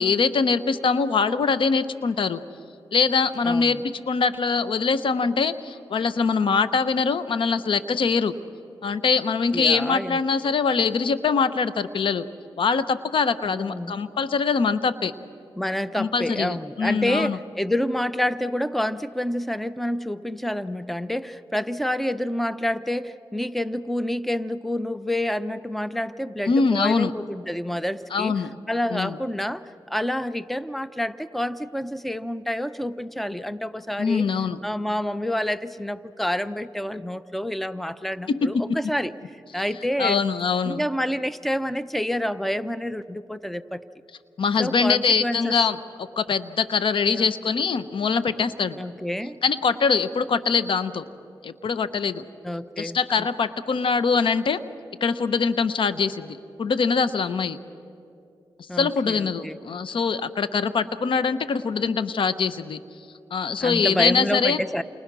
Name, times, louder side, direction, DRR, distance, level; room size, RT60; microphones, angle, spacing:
voice 1, 0.0-2.4 2.9-8.3 8.8-12.3 12.6-15.1 15.9-17.4 26.5-27.1 28.1-28.5 28.9-29.2 34.0-34.6 38.3-38.8 40.0-40.8 44.4-45.8 46.2-48.8 49.4-51.0 51.4-52.2 52.8-54.6 55.0-57.6 58.7-62.8 63.3-64.6, left 5 dB, 70° left, 13 dB, 1.0 m, -23 dB
voice 2, 3.4-3.8 9.5-10.2 13.4-14.0 15.6-28.4 28.7-34.3 34.6-39.1 39.5-40.2 40.6-43.8 44.6-45.6 47.0-47.3 48.8-49.4 52.4-53.3 58.7-59.6 63.6-64.8, left 1 dB, ahead, 14 dB, 0.8 m, -28 dB
29.0 x 28.5 x 6.2 m, 2.6 s
cardioid pair, 60°, 9 cm